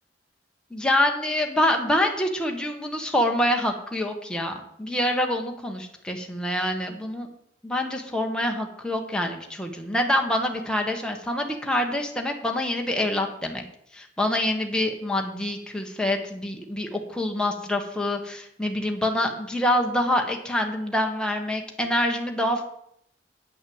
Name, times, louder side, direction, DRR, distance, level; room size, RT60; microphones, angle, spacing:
voice 1, 0.7-7.3 7.6-13.6 13.9-22.6, left 1 dB, 5° left, 2 dB, 1.2 m, -26 dB
9.3 x 6.1 x 7.9 m, 0.72 s
head